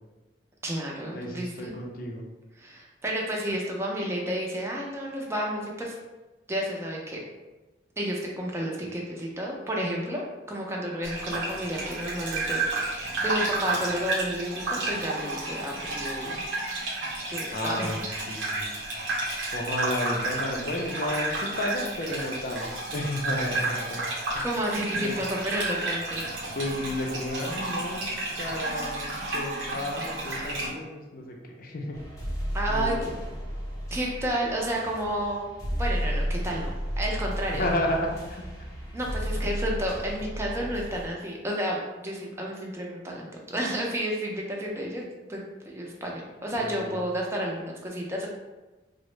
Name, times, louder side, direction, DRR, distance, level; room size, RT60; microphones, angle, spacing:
voice 1, 0.6-1.7 2.6-5.9 6.5-7.2 8.0-16.4 17.3-18.3 24.3-26.2 32.5-32.9 33.9-35.5 35.8-36.7 37.0-37.7 38.9-41.8 42.0-48.3, right 1 dB, 15° right, -2 dB, 0.5 m, -31 dB
voice 2, 1.1-2.3 17.5-18.7 19.5-24.0 24.3-24.4 25.0-25.1 26.5-32.0 32.7-33.1 37.5-38.4 46.6-47.0, left 1 dB, 50° left, 0 dB, 0.5 m, -32 dB
Gurgling / Bathtub (filling or washing), 11.0-30.7, right 2 dB, 90° right, 0.7 m, -31 dB
sound 1, 31.9-41.0, equal, 20° left, 0.7 m, -33 dB
3.5 x 2.0 x 3.1 m, 1.1 s
head